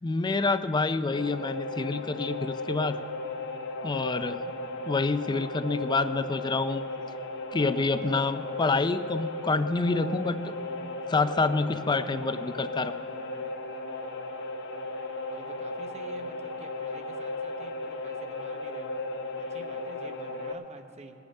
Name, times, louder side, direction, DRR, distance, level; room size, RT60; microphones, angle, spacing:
voice 1, 0.0-3.0 3.8-4.4 4.9-6.8 7.5-10.5 11.1-12.9, left 3 dB, 20° left, 12 dB, 0.4 m, -27 dB
sound 1, 1.1-20.5, left 2 dB, 60° left, 0.8 m, -36 dB
voice 2, 15.3-19.0 19.4-21.1, right 2 dB, 30° right, 6 dB, 0.8 m, -49 dB
20.5 x 7.1 x 5.4 m, 2.7 s
head